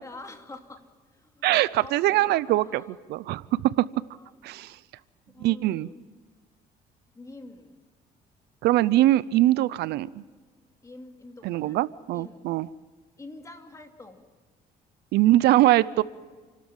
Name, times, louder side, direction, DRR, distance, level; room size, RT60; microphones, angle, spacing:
voice 1, 0.0-3.0 4.1-4.3 5.3-6.0 7.1-7.8 10.8-11.9 12.1-12.4 13.2-14.3, left 2 dB, 20° left, 5 dB, 2.5 m, -46 dB
voice 2, 1.4-2.8 3.1-3.9 4.4-4.8 5.4-5.9 8.6-10.2 11.4-12.7 15.1-16.0, right 15 dB, 80° right, 18 dB, 0.6 m, -22 dB
29.5 x 13.0 x 7.4 m, 1.4 s
cardioid pair, 110°, 17 cm